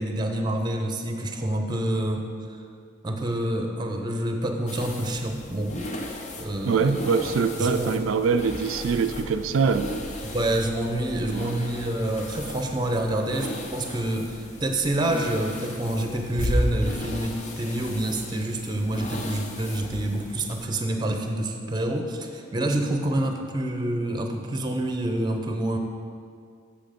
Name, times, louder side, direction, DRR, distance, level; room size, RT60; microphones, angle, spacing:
voice 1, 0.0-2.2 3.0-5.9 6.4-7.0 7.6-7.9 10.2-25.8, right 1 dB, 20° right, 4 dB, 0.7 m, -27 dB
sound 1, 4.7-20.7, left 1 dB, 35° left, 0.7 m, -35 dB
voice 2, 6.6-9.9 11.3-11.6, right 5 dB, 85° right, 8 dB, 0.4 m, -24 dB
7.6 x 6.9 x 5.2 m, 2.3 s
head